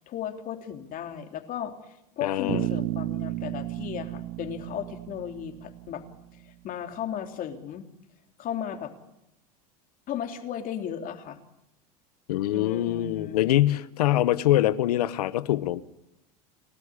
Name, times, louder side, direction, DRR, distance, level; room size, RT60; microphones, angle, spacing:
voice 1, 0.0-6.0 6.4-7.9 8.4-8.9 10.1-11.4 12.5-13.4, left 9 dB, 45° left, 3.4 m, -35 dB
voice 2, 2.2-2.7 12.3-15.8, left 14 dB, 85° left, 1.2 m, -24 dB
Bass guitar, 2.5-6.4, right 17 dB, 60° right, 0.9 m, -33 dB
30.0 x 13.5 x 10.0 m
supercardioid pair, 105°, 19 cm